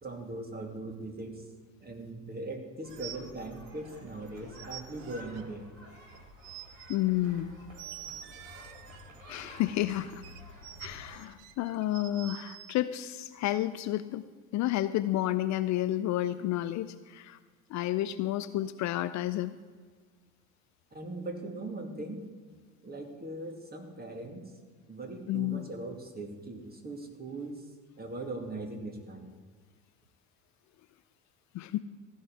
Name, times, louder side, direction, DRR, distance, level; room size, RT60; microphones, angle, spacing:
voice 1, 0.0-1.4 1.8-5.7 20.9-22.2 22.8-24.5 24.9-27.7 28.0-29.3, right 2 dB, 25° right, 4 dB, 2.5 m, -40 dB
sound 1, 2.8-11.2, left 1 dB, 80° right, 3.8 m, -51 dB
sound 2, 2.9-4.0 4.3-5.4 6.2-7.0 7.7-9.2 10.1-12.8, right 11 dB, 60° right, 1.0 m, -47 dB
voice 2, 6.9-7.5 9.3-10.2 10.8-14.2 14.5-17.4 17.7-19.5 25.3-25.6 31.5-31.8, left 14 dB, 45° left, 12 dB, 0.6 m, -31 dB
15.0 x 5.5 x 9.9 m, 1.5 s
figure-of-eight pair, 65°, 39 cm